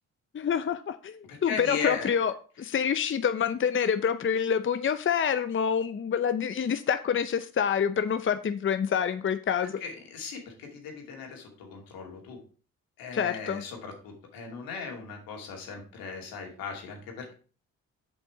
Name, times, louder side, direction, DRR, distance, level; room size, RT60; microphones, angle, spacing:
voice 1, 0.3-9.8 13.1-13.6, left 7 dB, 35° left, 11 dB, 0.7 m, -27 dB
voice 2, 1.3-2.1 9.8-12.4 13.0-17.3, left 5 dB, 85° left, 1 dB, 2.5 m, -37 dB
7.0 x 5.4 x 4.9 m, 0.38 s
supercardioid pair, 55°, 34 cm